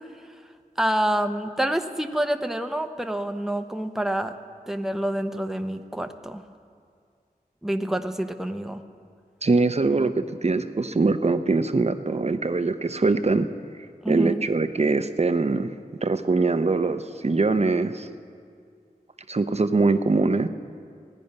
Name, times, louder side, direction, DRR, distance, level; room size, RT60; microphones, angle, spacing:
voice 1, 0.8-4.3 4.7-6.4 7.6-8.8 14.0-14.4, right 1 dB, 5° right, 7 dB, 0.7 m, -27 dB
voice 2, 9.4-13.5 14.1-15.7 16.0-18.1 19.3-20.5, right 3 dB, 45° right, 10 dB, 0.7 m, -22 dB
17.5 x 10.0 x 5.3 m, 2.2 s
wide cardioid pair, 50°, 16 cm